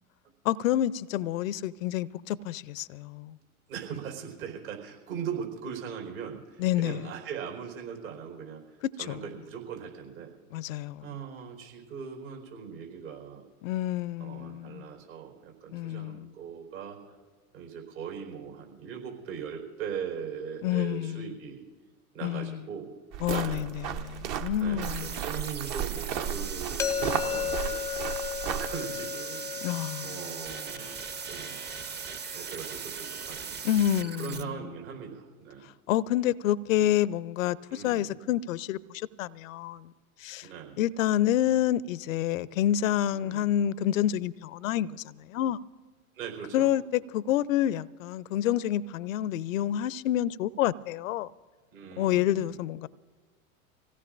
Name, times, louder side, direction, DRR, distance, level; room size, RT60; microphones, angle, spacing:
voice 1, 0.4-3.4 6.6-7.1 9.0-9.2 10.5-11.1 13.6-14.9 15.7-16.3 20.6-21.3 22.2-22.6 23.2-25.2 29.6-30.2 33.6-34.6 35.9-39.9 40.2-40.5 40.8-45.6 46.5-51.3 52.0-52.9, left 12 dB, 65° left, 0.6 m, -28 dB
voice 2, 3.7-8.6 9.0-10.3 11.0-13.4 14.2-17.0 17.5-21.6 22.1-22.9 23.3-23.7 24.6-27.8 28.4-29.5 30.0-31.0 31.3-31.6 32.3-33.6 34.2-35.7 37.7-38.1 40.4-40.8 43.1-43.5 46.1-46.7 51.7-52.6, right 7 dB, 65° right, 4.6 m, -40 dB
sound 1, 23.1-28.8, right 9 dB, 45° right, 1.0 m, -34 dB
sound 2, 24.8-34.4, right 6 dB, 25° right, 0.8 m, -39 dB
sound 3, 26.8-32.6, left 8 dB, 5° left, 0.5 m, -35 dB
25.5 x 17.0 x 2.6 m
hypercardioid pair, 95°, 43 cm